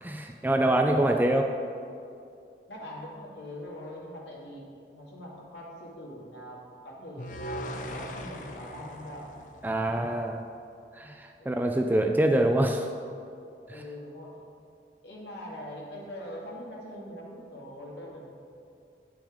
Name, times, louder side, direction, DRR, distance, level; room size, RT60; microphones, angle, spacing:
voice 1, 0.0-1.4 9.6-10.4 10.9-12.9 13.7-13.8, right 1 dB, 10° right, 3 dB, 0.3 m, -25 dB
voice 2, 0.7-1.2 2.7-4.6 4.9-7.5 7.9-9.3 9.9-10.1 11.4-11.6 13.7-14.4 15.0-18.3, equal, 80° left, -4 dB, 2.0 m, -42 dB
sound 1, 7.2-10.4, equal, 45° left, 0.6 m, -40 dB
8.9 x 6.0 x 5.0 m, 2.5 s
head